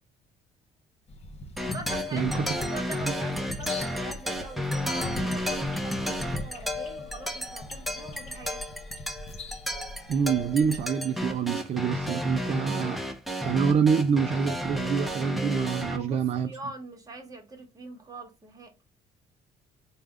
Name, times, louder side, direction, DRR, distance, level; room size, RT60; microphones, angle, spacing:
sound 1, 1.1-10.8, left 1 dB, 40° left, 0.7 m, -41 dB
sound 2, 1.6-16.0, left 1 dB, ahead, 0.7 m, -32 dB
voice 1, 1.6-8.6 15.9-18.7, right 2 dB, 20° right, 1.1 m, -43 dB
voice 2, 2.1-2.4 3.0-3.1 10.1-13.0 13.4-16.5, right 6 dB, 40° right, 0.4 m, -26 dB
3.3 x 2.3 x 3.5 m
cardioid pair, 110°, 17 cm